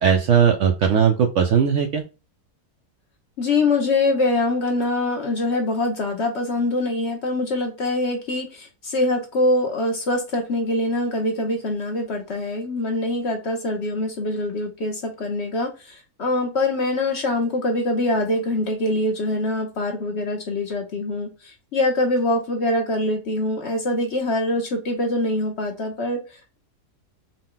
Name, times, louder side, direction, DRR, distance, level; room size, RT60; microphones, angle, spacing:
voice 1, 0.0-2.0, right 7 dB, 70° right, 4 dB, 0.7 m, -18 dB
voice 2, 3.4-26.6, left 2 dB, 55° left, 2 dB, 0.9 m, -24 dB
3.9 x 2.2 x 3.6 m, 0.30 s
omnidirectional pair, 1.7 m